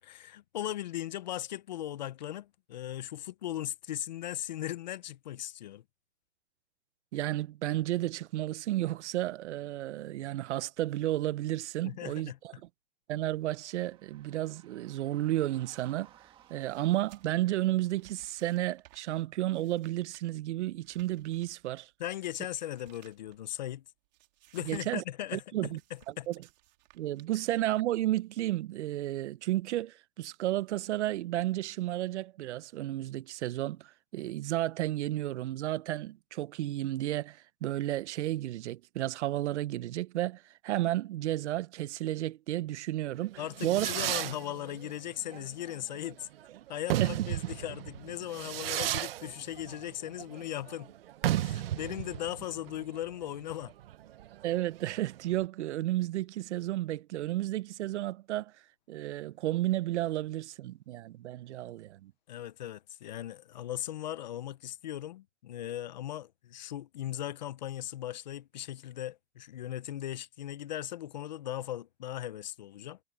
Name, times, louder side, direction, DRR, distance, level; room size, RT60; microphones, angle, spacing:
voice 1, 0.0-5.8 11.8-12.6 22.0-23.8 24.5-26.3 43.4-46.3 46.7-50.9 51.4-53.7 62.3-73.0, left 12 dB, 40° left, 0.5 m, -38 dB
voice 2, 7.1-12.3 13.1-16.1 16.5-21.9 24.7-25.0 25.3-25.8 26.3-26.4 26.9-43.9 47.0-47.3 54.4-58.5 58.9-62.1, right 15 dB, 75° right, 0.6 m, -32 dB
sound 1, 13.5-18.7, right 11 dB, 15° right, 1.4 m, -61 dB
sound 2, 16.4-23.7 24.0-25.0 25.2-28.0, right 19 dB, 40° right, 2.5 m, -62 dB
Fireworks, 43.2-55.4, right 13 dB, 55° right, 0.9 m, -35 dB
supercardioid pair, 175°, 35 cm